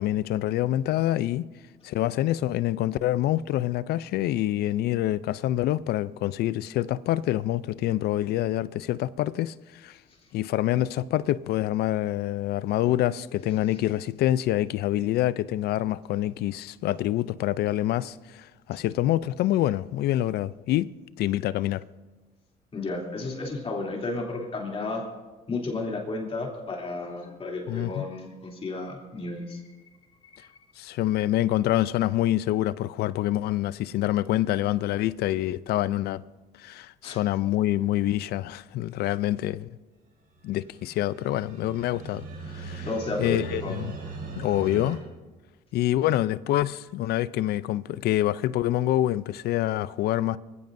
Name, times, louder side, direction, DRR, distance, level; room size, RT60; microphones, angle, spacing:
voice 1, 0.0-1.5 1.8-10.0 10.3-20.9 21.2-21.8 27.7-28.1 30.8-36.2 36.6-39.7 40.4-42.9 43.2-43.9 44.4-45.0 45.7-50.4, left 14 dB, 70° left, 0.5 m, -26 dB
voice 2, 22.7-25.1 25.5-29.6 30.4-30.5 37.0-37.2 42.9-43.8, left 2 dB, 35° left, 2.9 m, -32 dB
sound 1, 40.4-45.0, right 3 dB, 70° right, 5.3 m, -39 dB
23.5 x 16.0 x 2.6 m
cardioid pair, 110°, 17 cm